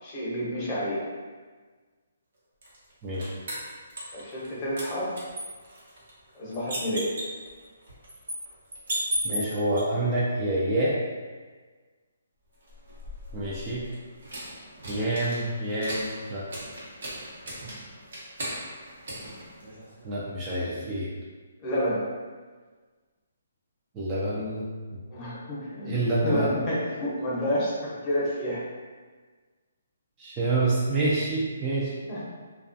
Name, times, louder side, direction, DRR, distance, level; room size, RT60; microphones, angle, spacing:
voice 1, 0.0-1.0 4.1-5.1 6.3-7.1 21.6-22.0 25.1-28.6 32.1-32.2, equal, 25° left, -7 dB, 0.8 m, -29 dB
sound 1, 2.6-4.5 4.8-9.8 12.6-20.1, equal, 65° right, 0.8 m, -37 dB
voice 2, 3.0-3.3 9.2-11.0 13.3-13.9 14.9-16.5 20.0-21.1 23.9-24.7 25.9-26.5 30.2-31.9, right 2 dB, 20° right, -7 dB, 0.4 m, -27 dB
2.3 x 2.3 x 2.5 m, 1.4 s
hypercardioid pair, 155°, 0 cm